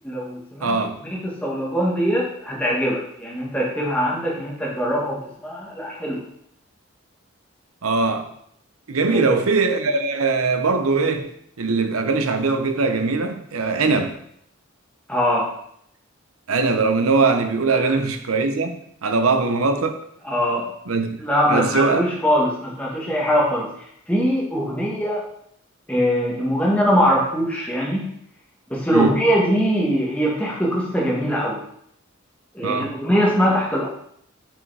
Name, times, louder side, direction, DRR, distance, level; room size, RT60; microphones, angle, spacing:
voice 1, 0.0-0.8 1.1-6.2 9.1-9.2 15.1-15.6 17.8-17.9 20.2-20.7 21.2-25.2 25.9-28.1 28.7-31.6 32.5-33.9, equal, 5° left, 1.7 m, -22 dB
voice 2, 0.6-1.0 7.8-8.3 8.9-11.3 11.6-14.2 16.5-20.0 20.9-21.2 21.5-22.0 28.9-29.2 32.6-32.9, right 3 dB, 85° right, 0.8 m, -21 dB
5.6 x 5.1 x 4.8 m
head